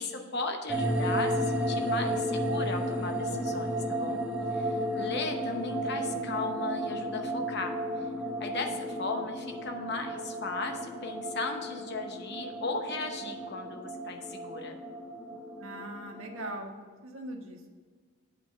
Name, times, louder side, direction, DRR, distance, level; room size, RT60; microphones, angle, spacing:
voice 1, 0.0-4.2 4.5-7.7 8.4-14.8, left 3 dB, 50° left, 4 dB, 0.8 m, -36 dB
sound 1, 0.7-16.6, right 1 dB, 10° right, 0.9 m, -33 dB
voice 2, 15.6-16.7 17.0-17.7, right 1 dB, 70° right, 2 dB, 1.3 m, -41 dB
8.4 x 5.2 x 6.2 m, 1.5 s
head